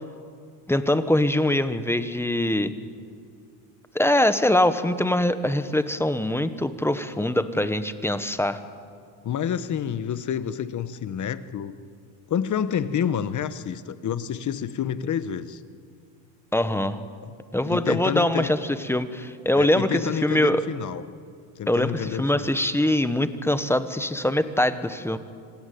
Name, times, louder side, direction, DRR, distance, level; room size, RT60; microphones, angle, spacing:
voice 1, 0.7-2.7 3.9-8.6 16.5-17.0 17.5-20.6 21.7-25.2, left 1 dB, 5° left, 11 dB, 1.1 m, -23 dB
voice 2, 9.2-11.8 12.3-15.6 17.2-17.3 17.6-18.5 19.6-21.0 21.6-22.5, left 8 dB, 35° left, 13 dB, 1.2 m, -28 dB
27.0 x 20.0 x 9.3 m, 2.3 s
cardioid pair, 130°, 49 cm